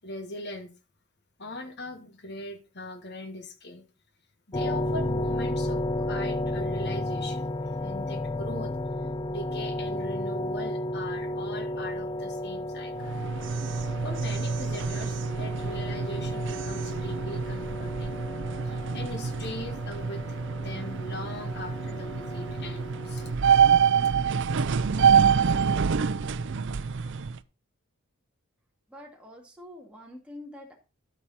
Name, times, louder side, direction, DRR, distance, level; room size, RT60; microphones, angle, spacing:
voice 1, 0.0-0.7 1.4-3.8 4.5-8.7 9.3-13.2 14.0-18.2 18.6-23.3, left 1 dB, 50° left, 1.5 m, -40 dB
sound 1, 4.5-23.3, left 1 dB, 25° left, 0.5 m, -33 dB
sound 2, 13.0-27.4, right 6 dB, 60° right, 0.5 m, -26 dB
voice 2, 28.9-30.8, left 1 dB, 5° right, 2.2 m, -45 dB
12.5 x 6.1 x 4.2 m
head